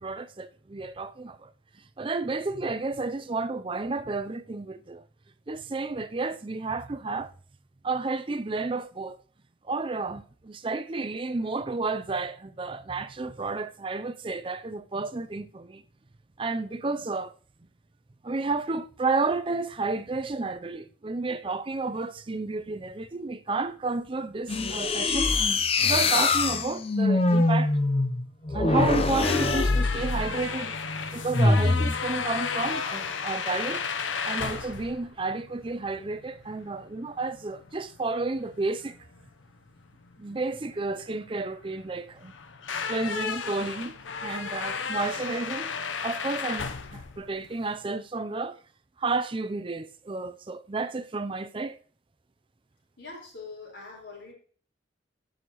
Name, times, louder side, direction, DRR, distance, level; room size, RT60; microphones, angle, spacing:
voice 1, 0.0-1.5 2.0-5.0 5.5-7.3 7.8-9.2 9.6-15.8 16.4-17.3 18.2-25.3 25.8-27.8 28.5-30.8 31.1-33.9 34.2-39.0 40.2-42.3 42.9-44.0 44.2-45.8 46.0-48.6 49.0-51.8, right 3 dB, 25° right, 0.5 m, -31 dB
sound 1, 24.5-30.4 31.3-32.0, left 3 dB, 30° left, 0.6 m, -24 dB
sound 2, 28.9-47.9, left 5 dB, 85° left, 0.8 m, -34 dB
voice 2, 53.0-54.3, left 3 dB, 65° left, 4.6 m, -43 dB
15.0 x 6.4 x 3.0 m
head